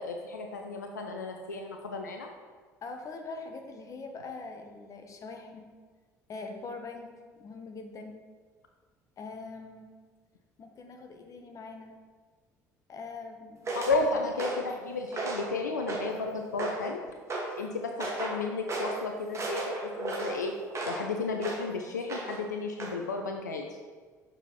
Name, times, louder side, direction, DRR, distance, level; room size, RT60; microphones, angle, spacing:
voice 1, 0.0-2.3 13.7-17.0 17.6-20.5 20.9-23.6, left 3 dB, 80° left, 3 dB, 0.4 m, -33 dB
voice 2, 2.8-5.7 6.3-8.2 9.2-9.9 10.6-11.9 12.9-13.7, left 3 dB, 35° left, 4 dB, 0.8 m, -43 dB
sound 1, 13.6-14.0 14.4-14.7 15.1-15.5 15.9-16.2 16.6-16.9 17.3-17.5 18.0-18.4 18.7-19.0 19.3-21.0 21.4-21.7 22.1-22.5 22.8-23.0, right 2 dB, 30° right, 1.4 m, -34 dB
6.8 x 5.9 x 2.9 m, 1.5 s
figure-of-eight pair, 55°, 9 cm